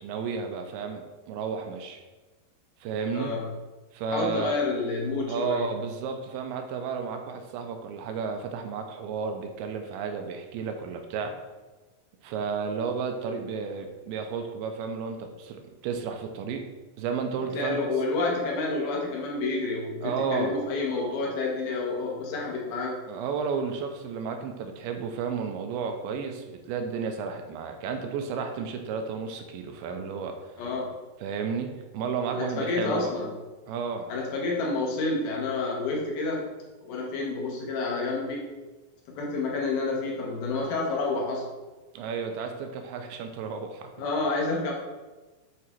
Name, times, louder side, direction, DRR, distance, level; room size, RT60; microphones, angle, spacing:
voice 1, 0.0-2.0 2.8-3.3 3.9-4.6 5.3-11.4 12.2-16.7 17.0-17.8 20.0-20.6 23.1-30.4 31.2-33.1 33.7-34.1 42.0-43.9, right 5 dB, 80° right, 5 dB, 2.4 m, -32 dB
voice 2, 3.1-3.4 4.1-5.7 17.5-23.0 30.6-30.9 32.3-33.3 34.1-36.5 36.8-38.6 39.2-41.5 44.0-44.7, left 3 dB, 70° left, -2 dB, 3.0 m, -29 dB
8.5 x 3.7 x 4.5 m, 1.2 s
omnidirectional pair, 4.7 m